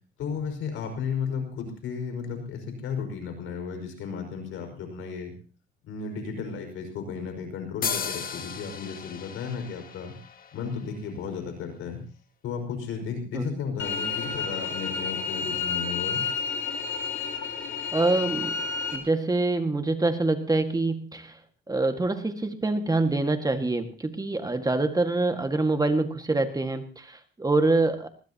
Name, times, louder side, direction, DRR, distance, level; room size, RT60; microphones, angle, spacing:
voice 1, 0.2-5.3 5.8-10.2 10.5-12.0 12.4-16.2, left 6 dB, 85° left, 5 dB, 5.6 m, -34 dB
sound 1, 7.8-11.4, left 6 dB, 45° left, 1.7 m, -35 dB
sound 2, 13.8-19.0, left 5 dB, 70° left, 3.4 m, -30 dB
voice 2, 17.9-18.6 18.9-21.4 21.7-28.1, right 2 dB, 20° right, 7 dB, 1.8 m, -25 dB
20.0 x 20.0 x 2.9 m, 0.36 s
cardioid pair, 90°, 20 cm